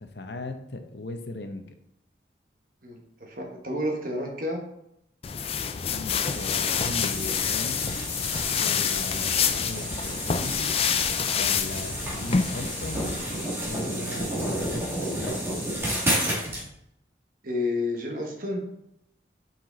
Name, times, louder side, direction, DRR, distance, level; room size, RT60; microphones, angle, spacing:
voice 1, 0.0-1.6 5.9-8.0 8.6-10.8 11.3-13.1 13.6-15.7, left 2 dB, 70° left, 7 dB, 0.8 m, -38 dB
voice 2, 2.8-4.6 17.4-18.6, left 1 dB, 50° right, 2 dB, 1.3 m, -30 dB
sound 1, 5.2-13.5, left 7 dB, 35° left, 0.4 m, -27 dB
sound 2, 6.2-16.6, right 1 dB, 15° right, 2.0 m, -31 dB
5.8 x 5.3 x 3.9 m, 0.77 s
head